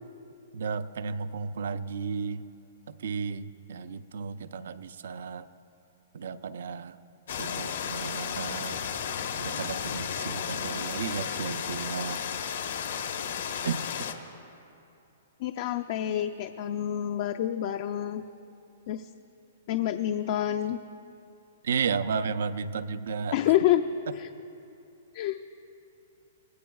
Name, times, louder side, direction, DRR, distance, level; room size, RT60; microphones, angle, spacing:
voice 1, 0.5-2.4 2.9-5.5 6.1-7.0 7.4-8.8 9.4-12.2 13.6-13.8 21.6-23.4, right 6 dB, 75° right, 13 dB, 0.6 m, -33 dB
sound 1, 7.3-14.1, left 8 dB, 70° left, 1.1 m, -33 dB
voice 2, 15.4-18.2 18.9-19.1 19.7-20.8 23.3-23.8 24.2-24.3 25.1-25.4, left 12 dB, 45° left, 8 dB, 0.4 m, -27 dB
24.5 x 18.5 x 2.4 m, 2.7 s
hypercardioid pair, 155°, 0 cm